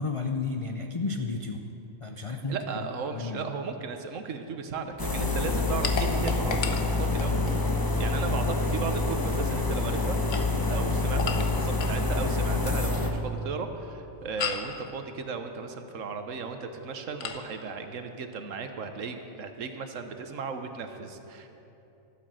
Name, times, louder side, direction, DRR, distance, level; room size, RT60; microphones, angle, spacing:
voice 1, 0.0-1.7 2.0-2.6 3.1-3.5, left 4 dB, 45° left, 3 dB, 0.4 m, -32 dB
voice 2, 2.5-7.4 8.0-10.2 10.7-21.5, right 5 dB, 70° right, 7 dB, 1.3 m, -36 dB
sound 1, 5.0-13.1, left 2 dB, 20° left, 0.8 m, -27 dB
sound 2, 5.8-7.6 10.1-12.0 14.4-14.8 17.2-17.5, left 6 dB, 65° left, 1.2 m, -34 dB
12.5 x 9.0 x 7.5 m, 3.0 s
omnidirectional pair, 1.4 m